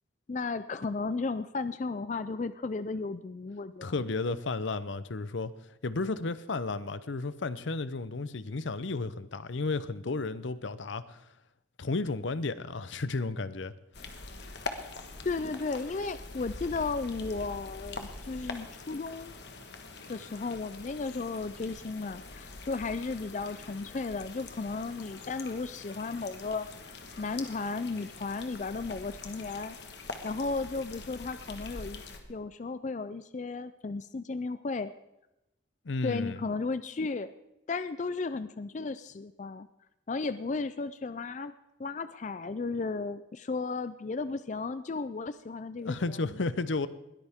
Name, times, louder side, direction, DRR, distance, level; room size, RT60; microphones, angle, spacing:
voice 1, 0.3-3.9 15.2-19.3 20.1-26.7 27.2-29.8 30.2-32.0 32.3-34.9 36.0-37.3 37.7-39.7 40.1-41.5 41.8-46.2, left 3 dB, 40° left, 0.4 m, -34 dB
voice 2, 3.8-5.5 5.8-11.3 11.8-13.7 35.8-36.4 45.8-46.9, left 3 dB, 80° left, 0.7 m, -33 dB
sound 1, 13.9-32.2, left 3 dB, 60° left, 1.5 m, -44 dB
20.5 x 13.5 x 3.6 m
head